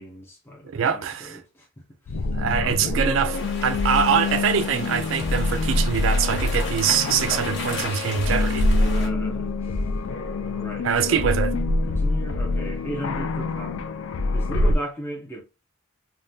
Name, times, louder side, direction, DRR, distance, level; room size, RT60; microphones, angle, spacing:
voice 1, 0.0-2.3 2.6-3.0 8.8-9.9 10.4-11.3 11.9-13.9 14.3-15.4, right 1 dB, 10° left, 0.4 m, -37 dB
voice 2, 0.6-1.4 2.3-8.7 10.8-11.5, right 7 dB, 75° right, 0.3 m, -24 dB
sound 1, 2.1-14.8, left 2 dB, 80° left, 0.4 m, -25 dB
sound 2, 3.3-9.1, left 2 dB, 60° left, 1.0 m, -35 dB
3.4 x 2.1 x 2.6 m
head